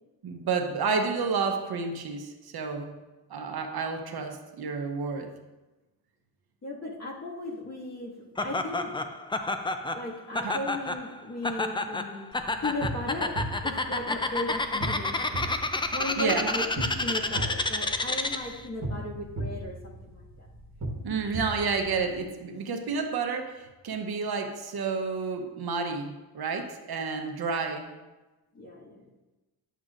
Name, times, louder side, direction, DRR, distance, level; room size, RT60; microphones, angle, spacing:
voice 1, 0.2-2.9 3.3-5.3 10.4-10.6 16.2-16.5 21.0-27.9, right 5 dB, 60° right, 4 dB, 0.9 m, -30 dB
voice 2, 6.6-8.2 8.4-8.9 9.9-12.3 12.6-13.4 13.6-15.5 15.9-20.5 28.5-29.0, left 2 dB, 35° left, -3 dB, 1.9 m, -36 dB
Laughter, 8.4-18.6, left 2 dB, 15° left, 0.3 m, -30 dB
sound 1, 12.3-22.3, right 1 dB, 40° right, 1.3 m, -37 dB
10.0 x 8.0 x 2.5 m, 1.1 s
cardioid pair, 100°, 43 cm